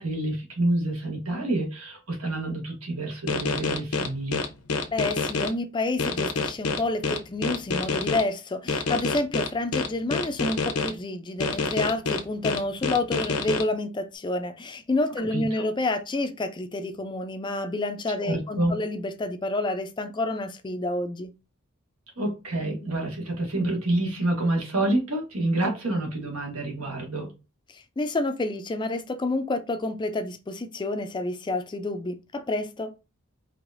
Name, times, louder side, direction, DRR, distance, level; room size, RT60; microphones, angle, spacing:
voice 1, 0.0-4.4 15.2-15.6 18.2-18.8 22.2-27.3, right 1 dB, 90° right, 1.7 m, -28 dB
sound 1, 3.3-5.5 6.0-8.2 8.7-10.9 11.4-13.6, left 4 dB, 85° left, 0.8 m, -27 dB
voice 2, 4.9-21.3 27.7-32.9, left 2 dB, 20° left, 0.4 m, -29 dB
4.8 x 2.9 x 2.5 m
head